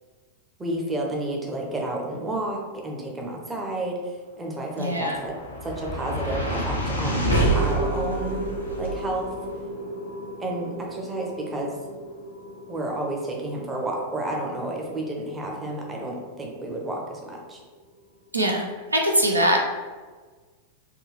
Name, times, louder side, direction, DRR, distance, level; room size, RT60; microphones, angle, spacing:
voice 1, 0.6-8.4 8.8-9.3 10.4-11.8 12.7-17.6, right 1 dB, 15° right, -1 dB, 0.6 m, -31 dB
sound 1, 4.7-17.1, right 1 dB, 85° left, 0.7 m, -30 dB
voice 2, 4.8-5.2 18.3-19.6, right 1 dB, 80° right, 1 dB, 0.4 m, -22 dB
3.5 x 2.3 x 3.1 m, 1.4 s
figure-of-eight pair, 90°, 0 cm